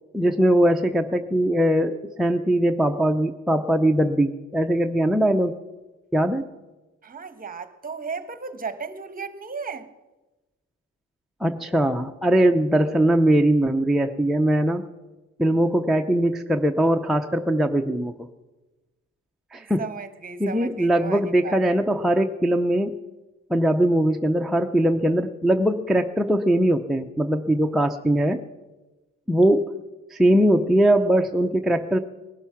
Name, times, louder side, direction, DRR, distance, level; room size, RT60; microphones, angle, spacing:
voice 1, 0.1-5.6 6.1-6.5 11.4-14.8 15.4-18.1 19.5-19.8 20.4-22.9 23.5-28.4 29.3-29.7 30.1-32.0, right 1 dB, ahead, 3 dB, 0.5 m, -21 dB
voice 2, 7.0-9.9 19.5-21.6, right 5 dB, 30° right, 11 dB, 1.1 m, -35 dB
19.5 x 12.0 x 5.8 m, 1.1 s
cardioid pair, 115°, 30 cm